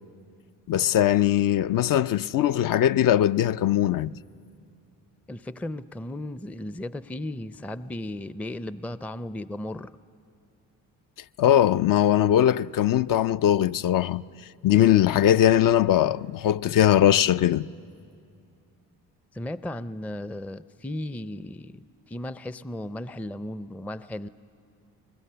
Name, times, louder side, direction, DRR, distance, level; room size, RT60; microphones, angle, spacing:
voice 1, 0.7-4.1 11.4-14.2 14.6-17.6, left 11 dB, 55° left, 0.5 m, -20 dB
voice 2, 5.3-9.9 19.3-24.3, left 1 dB, 5° left, 0.5 m, -35 dB
27.5 x 22.0 x 6.8 m
supercardioid pair, 55°, 40 cm